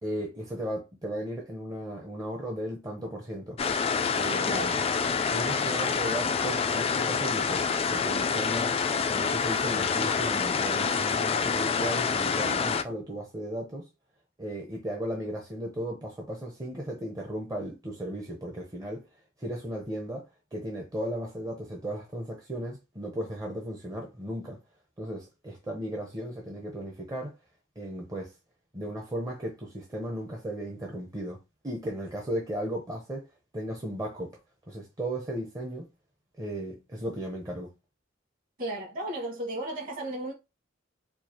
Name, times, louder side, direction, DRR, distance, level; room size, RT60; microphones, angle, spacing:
voice 1, 0.0-3.6 4.2-4.8 5.3-8.7 9.1-13.8 14.4-19.0 19.4-20.2 20.5-24.6 25.0-27.3 27.8-28.3 28.7-31.4 31.6-33.3 33.5-34.4 34.7-35.9 36.4-37.7, right 1 dB, 20° right, 0.7 m, -35 dB
sound 1, 3.6-12.8, left 5 dB, 30° left, 0.3 m, -27 dB
voice 2, 38.6-40.3, right 1 dB, 50° right, 1.9 m, -34 dB
4.5 x 2.4 x 2.8 m
head